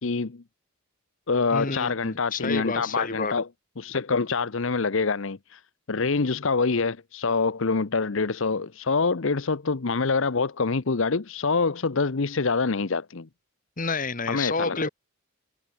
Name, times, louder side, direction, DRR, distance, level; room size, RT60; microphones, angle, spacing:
voice 1, 0.0-0.4 1.3-3.5 3.8-5.6 5.9-13.3 14.3-14.9, left 4 dB, 60° left, 0.8 m, -25 dB
voice 2, 1.5-3.3 13.8-14.9, left 4 dB, 40° left, 1.7 m, -29 dB
head